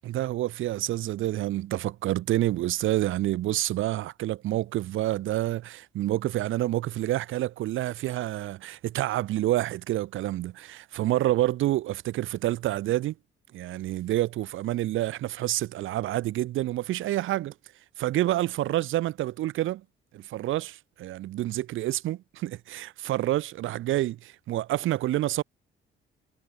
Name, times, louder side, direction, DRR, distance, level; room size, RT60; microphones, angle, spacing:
voice 1, 0.0-13.1 13.5-17.5 18.0-19.8 20.1-25.4, right 14 dB, 80° right, 7.9 m, -28 dB
cardioid pair, 150°, 20 cm